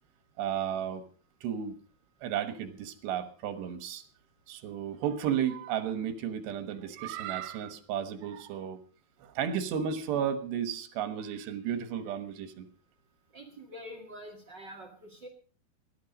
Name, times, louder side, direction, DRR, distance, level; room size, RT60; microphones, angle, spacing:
voice 1, 0.4-1.0 1.4-1.8 2.2-4.0 4.5-8.8 9.2-12.7, right 9 dB, 80° right, 11 dB, 3.5 m, -33 dB
voice 2, 13.3-15.3, equal, 40° right, 2 dB, 1.6 m, -46 dB
18.0 x 11.5 x 5.2 m, 0.40 s
omnidirectional pair, 4.8 m